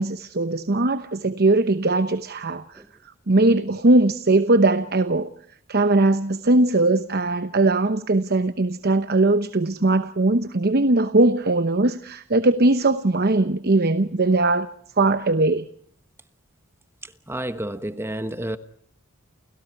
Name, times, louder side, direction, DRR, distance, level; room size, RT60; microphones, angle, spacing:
voice 1, 0.0-2.8 3.3-5.3 5.7-14.7 15.0-15.7, right 2 dB, 45° right, 0.9 m, -20 dB
voice 2, 17.3-18.6, right 1 dB, 10° right, 1.1 m, -30 dB
30.0 x 30.0 x 4.7 m
head